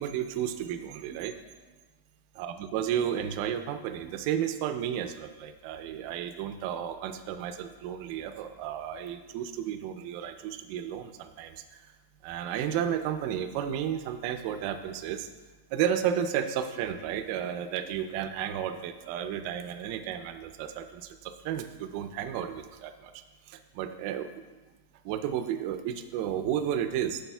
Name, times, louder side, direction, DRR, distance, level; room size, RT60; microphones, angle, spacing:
voice 1, 0.0-1.3 2.4-11.8 12.2-15.3 15.7-24.3 25.0-27.2, right 9 dB, 55° right, 9 dB, 0.6 m, -32 dB
9.7 x 6.8 x 2.3 m, 1.3 s
hypercardioid pair, 110°, 0 cm